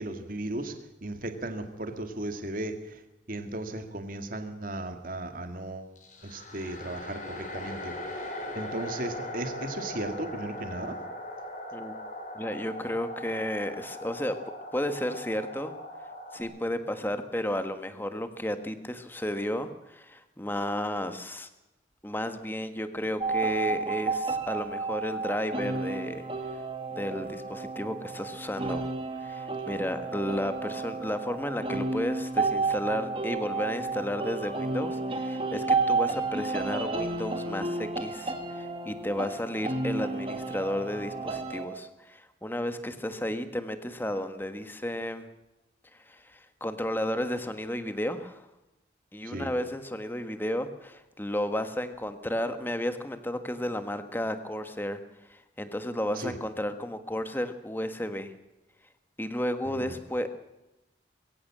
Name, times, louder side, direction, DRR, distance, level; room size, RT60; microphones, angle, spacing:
voice 1, 0.0-3.0 3.3-5.9 6.2-11.0 49.2-49.5 56.2-56.4 59.7-59.9, right 1 dB, 45° right, 6 dB, 2.1 m, -36 dB
sound 1, 6.0-16.4, left 1 dB, 40° left, 4.5 m, -40 dB
voice 2, 12.3-14.4 14.7-15.7 16.3-21.5 22.0-26.2 26.5-26.6 26.9-28.9 29.2-45.3 45.9-48.5 49.1-55.0 55.3-58.3 59.2-60.3, left 1 dB, 10° left, 9 dB, 1.5 m, -33 dB
sound 2, 23.2-41.7, right 3 dB, 30° right, 2.2 m, -31 dB
22.0 x 16.0 x 7.6 m, 0.94 s
head